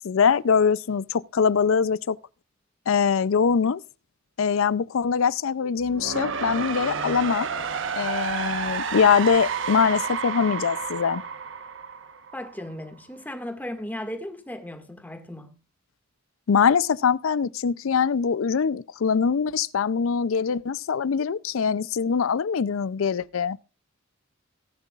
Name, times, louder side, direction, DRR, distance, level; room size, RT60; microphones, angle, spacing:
voice 1, 0.0-2.2 2.9-3.8 4.4-7.5 8.0-11.2 16.5-23.6, left 6 dB, 80° left, 0.5 m, -23 dB
sound 1, 5.8-12.7, right 6 dB, 65° right, 1.1 m, -30 dB
voice 2, 12.3-15.5, left 1 dB, 10° left, 1.9 m, -36 dB
17.5 x 10.5 x 2.4 m
head